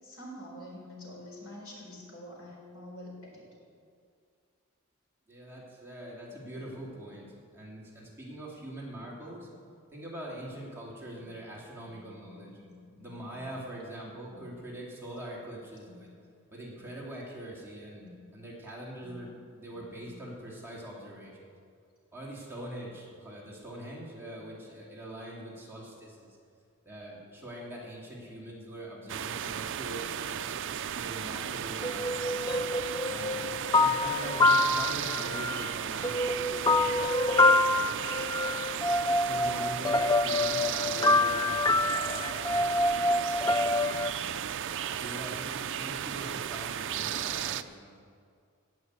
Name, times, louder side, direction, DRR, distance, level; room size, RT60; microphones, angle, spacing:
voice 1, 0.0-3.5 6.3-6.8 7.3-7.4 9.0-9.6 11.8-13.4 14.3-14.4 15.9-16.0 18.0-18.1 19.0-19.1 19.7-20.1, left 1 dB, 65° left, -2 dB, 3.9 m, -48 dB
voice 2, 5.3-9.5 9.9-12.6 13.0-16.1 16.5-18.0 18.3-21.4 22.1-26.3 26.8-30.6 30.9-32.4 33.0-38.6 39.2-44.2 44.8-47.9, right 1 dB, 10° right, -5 dB, 2.7 m, -43 dB
sound 1, 29.1-47.6, right 9 dB, 60° right, 0.5 m, -35 dB
sound 2, 31.8-35.7 36.0-44.1, left 2 dB, 15° left, 0.3 m, -26 dB
18.0 x 6.0 x 8.0 m, 2.3 s
head